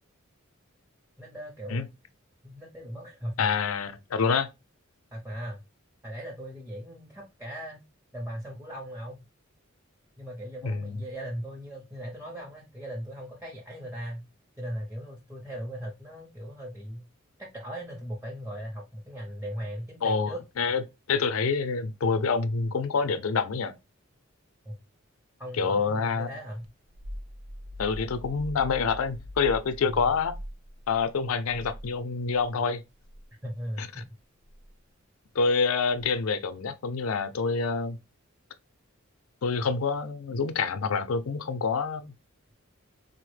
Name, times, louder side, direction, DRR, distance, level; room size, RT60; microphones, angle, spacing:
voice 1, 1.2-1.9 2.4-3.5 5.1-5.6 6.0-7.8 8.1-9.2 10.2-14.3 14.6-17.0 17.4-20.4 24.6-24.7 25.4-26.7 29.8-30.0 33.4-34.1, equal, 10° right, 0.6 m, -38 dB
voice 2, 3.4-4.5 10.6-11.0 20.0-20.8 21.1-23.7 25.6-26.3 27.8-30.4 30.9-32.8 33.8-33.9 35.3-38.0 39.4-42.1, left 5 dB, 85° left, 0.5 m, -27 dB
sound 1, 26.6-32.5 32.9-33.2 34.4-34.7 35.9-36.3, left 1 dB, 90° right, 0.6 m, -42 dB
4.1 x 2.0 x 3.1 m
head